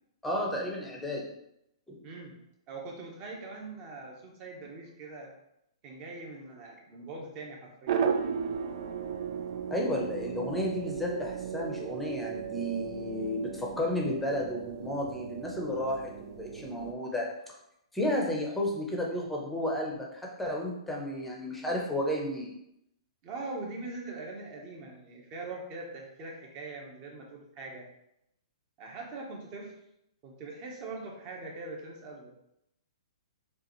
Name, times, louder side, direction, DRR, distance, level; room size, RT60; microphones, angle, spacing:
voice 1, 0.2-1.2 1.9-2.0 9.7-17.3 17.9-22.5, left 1 dB, 5° left, -2 dB, 0.8 m, -32 dB
voice 2, 2.0-2.3 2.7-5.3 5.8-8.0 23.2-27.9 28.8-29.8 30.2-32.3, right 3 dB, 30° right, 0 dB, 1.1 m, -42 dB
sound 1, 7.9-16.9, right 7 dB, 50° right, 0.4 m, -35 dB
6.6 x 2.5 x 3.1 m, 0.80 s
hypercardioid pair, 145°, 3 cm